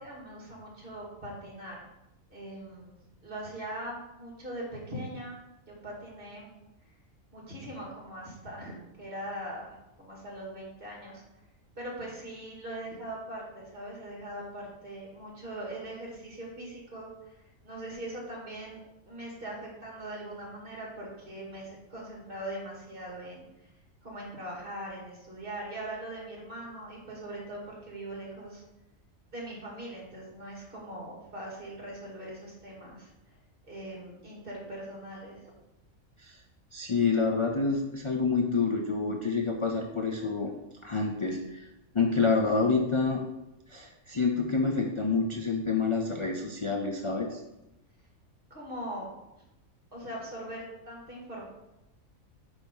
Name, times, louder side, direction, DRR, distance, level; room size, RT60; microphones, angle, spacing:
voice 1, 0.0-1.8 2.3-5.4 5.7-6.5 7.3-11.2 11.8-17.4 17.6-23.7 24.0-28.6 29.3-33.4 33.7-35.4 48.5-49.1 49.9-51.4, right 1 dB, 40° right, -3 dB, 2.5 m, -41 dB
voice 2, 36.7-40.5 40.8-41.7 41.9-43.2 43.7-47.4, left 4 dB, 50° left, 2 dB, 0.3 m, -28 dB
9.1 x 3.5 x 5.4 m, 0.93 s
omnidirectional pair, 1.4 m